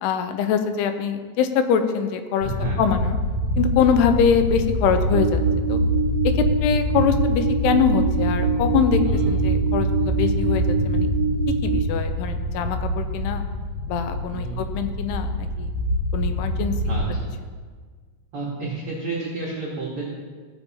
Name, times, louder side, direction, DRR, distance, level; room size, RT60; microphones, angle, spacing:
voice 1, 0.0-2.5 2.8-3.2 3.6-5.4 5.7-5.8 6.2-9.0 9.3-11.1 11.6-13.4 13.9-15.7 16.1-17.0, left 7 dB, 90° left, 8 dB, 2.7 m, -23 dB
sound 1, 2.4-17.1, equal, 65° left, 2.2 m, -25 dB
voice 2, 2.4-2.8 9.0-9.4 14.3-14.6 16.9-17.3 18.3-20.1, right 3 dB, 75° right, -4 dB, 1.2 m, -31 dB
sound 2, 5.1-11.8, right 8 dB, 60° right, 1.8 m, -26 dB
15.0 x 7.9 x 2.8 m, 1.5 s
omnidirectional pair, 4.6 m